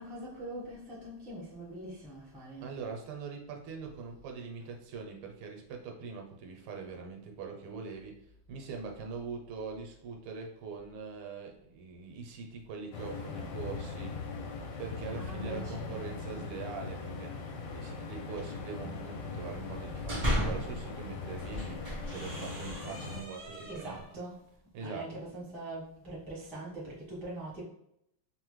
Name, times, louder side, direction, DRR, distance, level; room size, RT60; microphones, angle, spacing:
voice 1, 0.0-2.7 4.6-4.7 15.1-16.4 19.4-19.6 23.5-24.4 24.8-27.6, right 1 dB, 5° left, -7 dB, 0.4 m, -43 dB
voice 2, 2.6-8.2 8.5-14.2 14.8-17.3 17.7-24.0 24.7-25.2, right 5 dB, 80° right, 2 dB, 1.5 m, -42 dB
sound 1, 12.9-23.2, left 4 dB, 80° left, 1.4 m, -40 dB
sound 2, 19.7-20.8 21.3-24.1, equal, 65° right, 0.4 m, -35 dB
3.5 x 2.1 x 3.0 m, 0.74 s
omnidirectional pair, 2.4 m